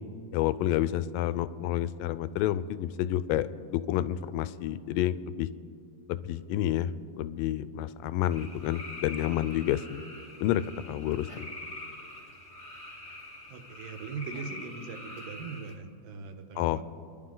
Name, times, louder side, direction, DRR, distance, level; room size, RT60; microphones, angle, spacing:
voice 1, 0.3-5.5 6.1-6.9 7.2-10.0 10.4-11.5 16.6-16.8, left 12 dB, 90° left, 14 dB, 2.2 m, -29 dB
sound 1, 8.3-15.8, left 2 dB, 30° left, 1.0 m, -44 dB
voice 2, 13.5-16.8, right 5 dB, 85° right, 5 dB, 2.7 m, -40 dB
27.0 x 11.0 x 3.9 m, 2.4 s
omnidirectional pair, 3.9 m